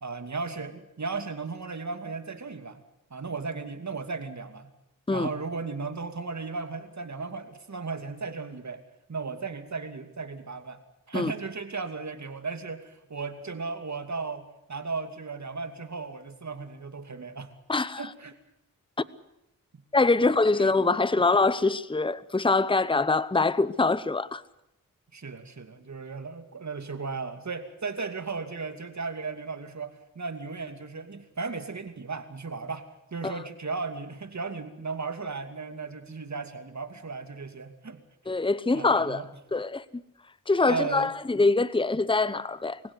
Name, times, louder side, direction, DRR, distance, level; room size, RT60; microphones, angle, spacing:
voice 1, 0.0-2.8 3.1-4.7 5.1-8.8 9.1-10.8 11.1-17.5 18.0-18.4 19.7-19.8 20.6-20.7 25.1-32.9 33.1-38.0 38.3-38.5 38.7-39.3 40.7-41.1, right 4 dB, 55° right, 2.7 m, -35 dB
voice 2, 17.7-18.1 19.9-24.4 33.2-33.3 38.3-39.2 39.5-40.0 40.5-42.8, left 3 dB, 15° left, 0.9 m, -24 dB
24.0 x 16.5 x 9.9 m
cardioid pair, 45°, 33 cm